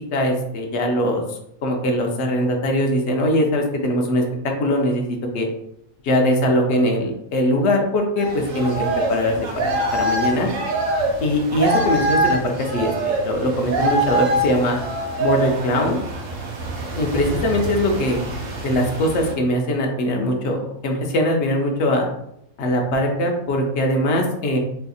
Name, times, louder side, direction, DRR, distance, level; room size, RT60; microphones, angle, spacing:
voice 1, 0.1-5.5 6.0-10.5 11.2-14.8 15.2-16.0 17.0-18.2 18.6-22.1 22.6-24.6, left 1 dB, 60° left, 2 dB, 0.8 m, -21 dB
sound 1, 8.2-19.3, right 1 dB, 70° right, 1.1 m, -24 dB
4.2 x 2.7 x 2.3 m, 0.77 s
omnidirectional pair, 1.5 m